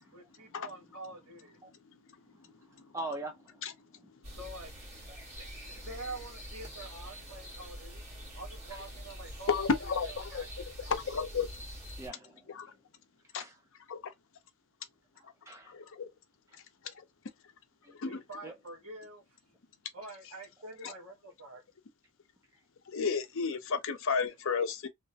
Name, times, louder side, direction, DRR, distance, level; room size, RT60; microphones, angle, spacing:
voice 1, 0.1-1.6 4.3-4.7 5.4-8.0 8.3-10.7 18.0-19.2 19.9-21.6 23.5-23.6, right 2 dB, 70° right, 1.3 m, -46 dB
voice 2, 2.3-3.6 5.1-5.2 8.7-8.8 12.0-12.6 13.4-13.6 15.2-15.7 16.5-16.6 17.8-18.0 18.4-18.5, right 2 dB, 15° right, 0.4 m, -43 dB
sound 1, 4.2-12.1, equal, 30° right, 1.6 m, -45 dB
voice 3, 9.5-10.4 10.9-11.5 12.6-12.7 13.3-13.4 13.9-14.1 15.7-16.1 18.0-18.1 22.9-24.9, left 5 dB, 60° left, 0.6 m, -31 dB
2.8 x 2.0 x 2.7 m
head